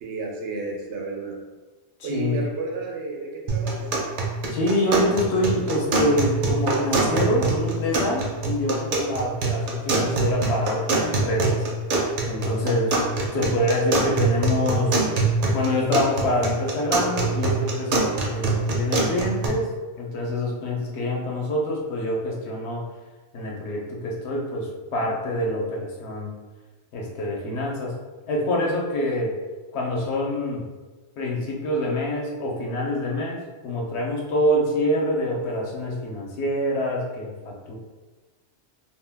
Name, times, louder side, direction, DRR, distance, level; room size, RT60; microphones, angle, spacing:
voice 1, 0.0-1.4 2.0-4.0, right 3 dB, 85° right, 0 dB, 0.9 m, -32 dB
voice 2, 2.0-2.4 4.5-11.6 12.2-13.0 13.3-15.0 15.5-19.7 20.0-22.8 23.3-26.3 26.9-28.0 28.3-29.3 29.7-30.7 31.2-37.7, left 1 dB, 80° left, -2 dB, 0.9 m, -26 dB
sound 1, 3.5-19.5, right 3 dB, 60° right, 0.6 m, -25 dB
2.5 x 2.2 x 3.3 m, 1.3 s
omnidirectional pair, 1.1 m